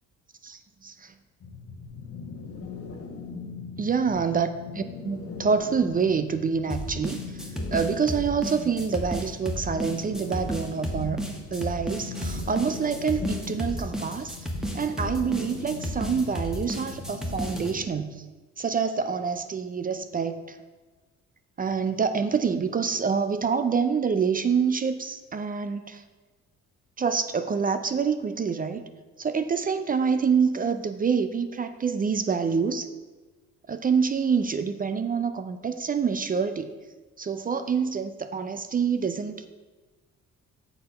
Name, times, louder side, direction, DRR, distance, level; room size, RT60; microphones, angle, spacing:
voice 1, 0.4-1.1 3.8-7.2 7.7-14.4 14.7-18.2 18.6-20.6 21.6-26.0 27.0-28.8 29.2-32.9 33.7-36.7 37.2-39.5, right 6 dB, 30° right, 10 dB, 0.4 m, -26 dB
sound 1, 1.4-17.8, left 5 dB, 50° left, 1.0 m, -40 dB
sound 2, 6.7-17.7, equal, ahead, 1.0 m, -33 dB
6.8 x 4.2 x 5.3 m, 1.3 s
cardioid pair, 90°, 30 cm